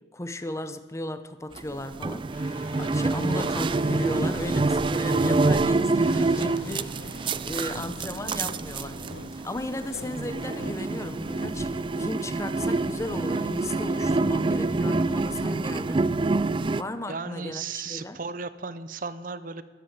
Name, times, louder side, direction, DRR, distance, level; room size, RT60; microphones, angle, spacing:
voice 1, 0.1-2.3 2.8-9.0 9.4-16.1 16.8-18.2, left 1 dB, 15° left, 11 dB, 0.8 m, -36 dB
sound 1, 1.6-16.8, right 3 dB, 30° right, 0.4 m, -26 dB
sound 2, 2.3-11.2, left 1 dB, 45° left, 4.3 m, -48 dB
Sawing, 3.4-15.5, left 2 dB, 85° left, 1.0 m, -44 dB
voice 2, 17.1-19.6, right 4 dB, 50° right, 13 dB, 0.7 m, -35 dB
13.5 x 11.0 x 8.8 m, 1.2 s
head